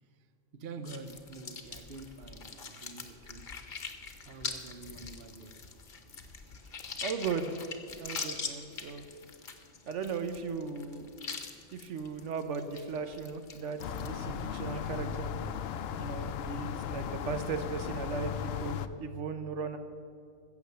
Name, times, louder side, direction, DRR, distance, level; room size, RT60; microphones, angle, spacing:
voice 1, 0.5-3.5 4.2-5.6 17.8-17.9, right 3 dB, 60° right, 9 dB, 1.0 m, -47 dB
sound 1, 0.9-14.1, left 5 dB, 45° left, 1.0 m, -43 dB
voice 2, 7.0-7.6 7.9-9.1 9.9-11.1 11.7-15.3 16.0-19.8, right 5 dB, 80° right, 8 dB, 1.1 m, -37 dB
sound 2, 13.8-18.9, left 8 dB, 65° left, 0.7 m, -36 dB
15.5 x 7.2 x 6.8 m, 2.4 s
omnidirectional pair, 1.2 m